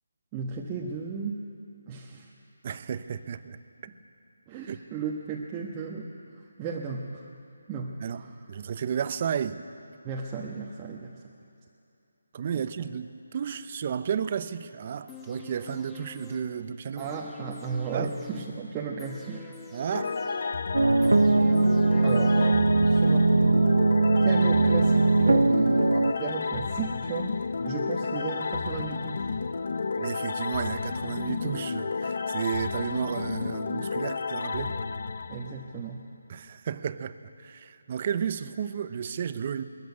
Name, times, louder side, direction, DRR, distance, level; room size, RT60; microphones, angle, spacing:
voice 1, 0.3-1.5 1.9-2.3 4.5-7.3 7.7-8.4 10.0-11.1 17.0-19.4 22.0-23.4 24.2-29.3 35.3-36.0, right 5 dB, 20° right, -2 dB, 1.3 m, -35 dB
voice 2, 2.6-3.6 4.7-4.8 8.0-9.6 12.3-17.0 17.9-18.1 19.7-20.2 30.0-34.8 36.3-39.6, right 7 dB, 35° right, 12 dB, 0.8 m, -32 dB
sound 1, 15.1-23.1 23.4-23.5, left 4 dB, 10° left, 1.4 m, -47 dB
sound 2, 19.9-36.0, left 4 dB, 55° left, 0.8 m, -32 dB
sound 3, 20.7-26.1, right 3 dB, 85° right, 0.5 m, -21 dB
21.0 x 14.5 x 9.7 m, 2.8 s
figure-of-eight pair, 160°, 0 cm